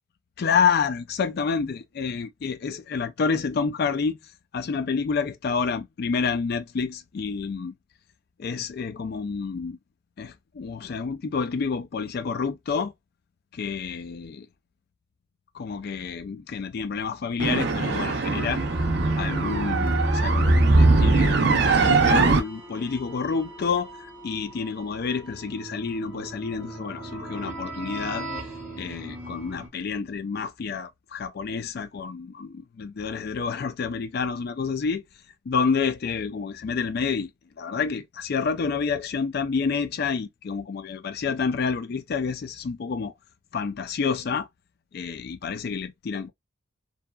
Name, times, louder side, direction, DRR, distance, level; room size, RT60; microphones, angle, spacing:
voice 1, 0.4-4.2 4.5-7.7 8.4-9.8 10.2-12.9 13.5-14.5 15.5-18.6 19.1-28.3 28.8-35.0 35.5-37.3 37.6-43.1 43.5-44.5 44.9-46.3, left 5 dB, 50° left, 0.3 m, -29 dB
sound 1, 17.4-22.4, right 3 dB, 50° right, 0.5 m, -20 dB
sound 2, 17.9-29.7, right 1 dB, 5° right, 0.6 m, -39 dB
2.7 x 2.2 x 2.2 m
head